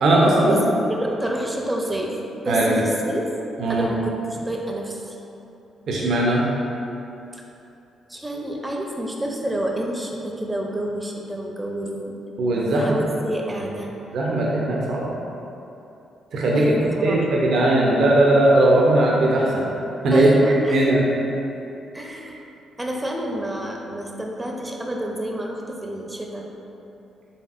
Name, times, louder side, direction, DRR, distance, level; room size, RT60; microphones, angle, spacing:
voice 1, 0.0-0.6 2.5-2.8 3.6-3.9 5.9-6.4 12.4-12.8 14.1-15.1 16.3-16.6 17.0-19.7 20.0-20.3 20.7-21.0, right 1 dB, 70° right, -3 dB, 0.5 m, -18 dB
voice 2, 0.9-2.1 2.4-3.2 3.7-5.2 7.3-7.4 8.1-12.2 12.7-13.9 16.5-17.4 20.1-20.9 21.9-22.4 22.8-26.5, right 1 dB, 15° right, 0 dB, 0.5 m, -28 dB
4.2 x 3.3 x 2.4 m, 2.9 s
supercardioid pair, 60°, 0 cm